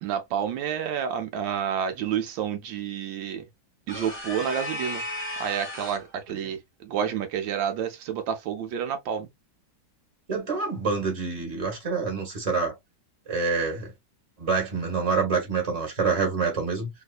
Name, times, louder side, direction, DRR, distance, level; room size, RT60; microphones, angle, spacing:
voice 1, 0.0-3.4 3.9-5.0 5.4-9.3, right 8 dB, 80° right, 1.4 m, -29 dB
sound 1, 3.9-6.1, left 1 dB, 10° left, 0.7 m, -34 dB
voice 2, 10.3-12.7 13.3-13.9 14.4-16.9, right 4 dB, 20° right, 1.3 m, -27 dB
3.2 x 2.8 x 2.4 m
omnidirectional pair, 2.1 m